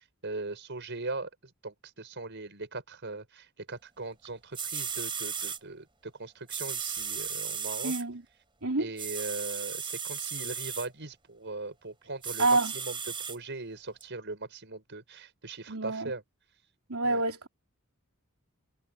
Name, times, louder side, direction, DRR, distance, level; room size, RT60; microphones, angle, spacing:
voice 1, 0.2-7.9 8.8-16.2 17.0-17.2, right 3 dB, 55° right, 5.4 m, -40 dB
sound 1, 4.2-4.3 4.5-5.6 6.5-8.0 9.0-10.9 12.2-13.4 14.0-14.1, right 6 dB, 25° right, 3.4 m, -35 dB
voice 2, 7.8-8.2 8.6-8.9 12.4-12.7 15.7-16.1 16.9-17.5, right 2 dB, 90° right, 3.5 m, -27 dB
head